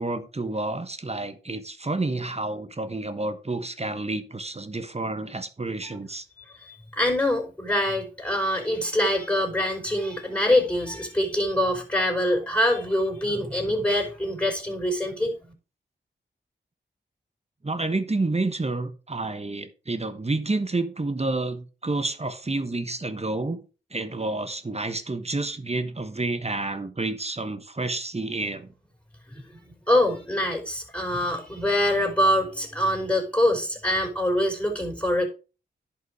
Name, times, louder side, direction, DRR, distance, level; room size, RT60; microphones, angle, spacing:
voice 1, 0.0-6.2 17.6-23.6 23.9-28.7, right 2 dB, 30° right, 1.3 m, -29 dB
voice 2, 6.6-15.5 29.3-35.3, left 1 dB, 5° left, 4.8 m, -24 dB
10.5 x 5.8 x 4.8 m
cardioid pair, 45°, 20 cm